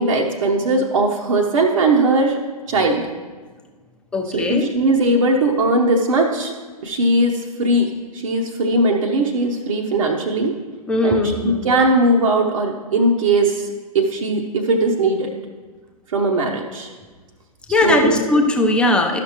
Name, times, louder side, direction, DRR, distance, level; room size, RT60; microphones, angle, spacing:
voice 1, 0.0-2.4 2.7-3.0 4.3-6.5 6.8-10.5 11.0-13.7 13.9-15.3 16.1-16.9 17.7-18.2, right 2 dB, 55° right, 0 dB, 0.8 m, -19 dB
voice 2, 4.1-4.7 10.9-11.7 17.7-19.2, left 2 dB, 5° left, 2 dB, 0.5 m, -19 dB
12.0 x 5.9 x 2.9 m, 1.4 s
figure-of-eight pair, 115°, 20 cm